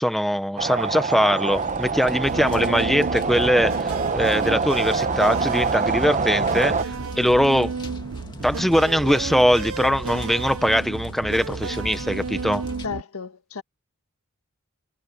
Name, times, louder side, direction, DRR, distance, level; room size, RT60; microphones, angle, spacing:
voice 1, 0.0-7.7 8.4-12.6, equal, ahead, 0.9 m, -21 dB
sound 1, 0.6-6.8, right 4 dB, 35° right, 0.9 m, -25 dB
sound 2, 1.5-12.9, left 1 dB, 20° left, 2.0 m, -40 dB
sound 3, 2.3-13.0, right 4 dB, 70° right, 0.8 m, -32 dB
voice 2, 12.8-13.6, left 5 dB, 85° left, 1.7 m, -33 dB
head